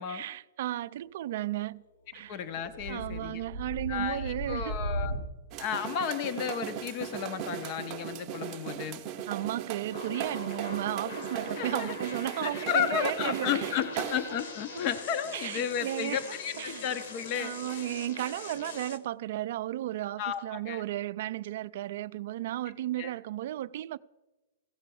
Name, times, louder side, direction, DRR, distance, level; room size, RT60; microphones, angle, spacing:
voice 1, 0.1-1.8 2.1-2.4 2.9-4.8 9.3-13.8 14.7-14.9 15.3-16.2 16.6-16.9 17.4-24.0, right 14 dB, 50° right, 0.4 m, -34 dB
voice 2, 2.3-3.4 3.9-5.1 5.6-9.0 11.6-11.9 12.4-17.8 20.2-20.8 23.0-23.1, left 8 dB, 30° left, 0.6 m, -33 dB
sound 1, 2.4-5.3, right 1 dB, 85° left, 1.9 m, -36 dB
sound 2, 5.5-14.4, right 9 dB, 20° right, 0.7 m, -38 dB
sound 3, 9.9-19.0, left 4 dB, 55° left, 1.4 m, -42 dB
15.5 x 6.6 x 6.9 m
hypercardioid pair, 170°, 0 cm